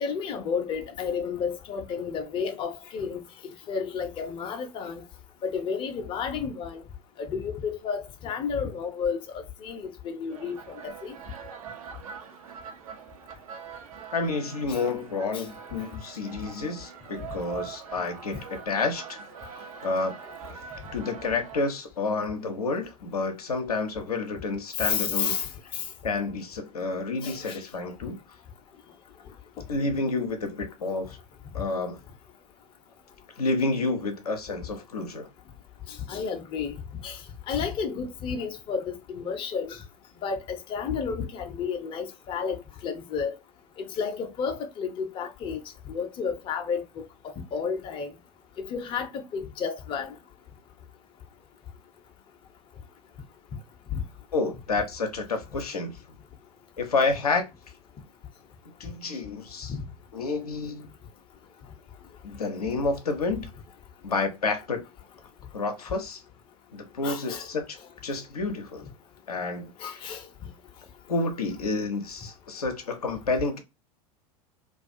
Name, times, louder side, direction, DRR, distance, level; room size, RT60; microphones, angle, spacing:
voice 1, 0.0-5.0 5.4-6.8 7.2-11.1 14.7-14.8 15.3-15.4 24.8-25.8 27.2-27.6 35.9-36.7 37.0-37.2 37.5-39.8 40.2-43.3 43.8-45.6 45.9-47.0 47.5-48.1 48.6-50.1 53.9-54.0 59.7-59.8 67.0-67.5 69.8-70.2, left 6 dB, 25° left, 0.5 m, -31 dB
sound 1, 10.3-21.6, right 7 dB, 65° right, 0.5 m, -43 dB
voice 2, 14.1-19.2 19.4-19.5 19.8-20.1 20.5-20.6 20.9-25.4 26.0-28.2 29.7-31.2 31.5-32.0 33.4-35.3 54.3-55.9 56.8-57.5 58.8-59.7 60.1-60.9 62.2-63.5 64.0-64.8 65.5-66.2 66.7-67.8 68.0-68.9 69.3-70.1 71.1-73.6, left 3 dB, 75° left, 0.6 m, -29 dB
2.3 x 2.3 x 2.4 m
figure-of-eight pair, 80°, 20 cm